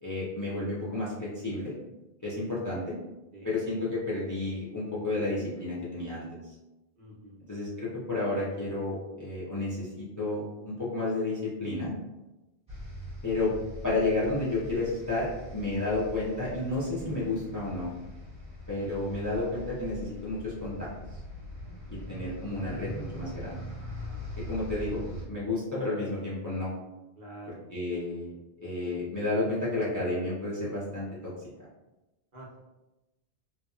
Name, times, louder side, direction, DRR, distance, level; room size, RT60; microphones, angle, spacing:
voice 1, 0.0-1.7 2.2-3.0 3.4-6.5 7.5-11.9 13.2-13.5 13.8-17.9 18.7-21.2 21.9-23.6 24.5-25.0 25.3-26.7 27.5-28.3 28.6-31.3, left 2 dB, 25° left, -7 dB, 0.4 m, -31 dB
voice 2, 7.0-7.4 24.0-24.3 27.2-27.6 32.3-32.6, right 2 dB, 55° right, -5 dB, 0.8 m, -48 dB
sound 1, 12.7-25.2, left 1 dB, 5° right, 1.0 m, -42 dB
2.8 x 2.1 x 2.3 m, 1.0 s
omnidirectional pair, 1.1 m